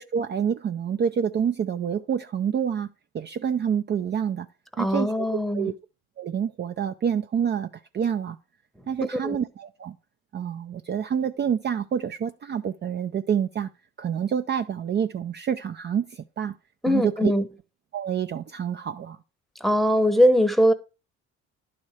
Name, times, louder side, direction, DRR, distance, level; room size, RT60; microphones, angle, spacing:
voice 1, 0.0-2.9 3.1-4.5 4.8-5.3 5.5-5.7 6.2-8.4 8.9-9.9 10.3-13.7 14.0-16.5 16.9-17.3 17.9-19.2, right 8 dB, 35° right, 0.5 m, -27 dB
voice 2, 4.8-5.7 9.2-9.4 16.8-17.4 19.6-20.7, equal, ahead, 0.9 m, -21 dB
11.0 x 4.3 x 4.9 m
cardioid pair, 95°, 29 cm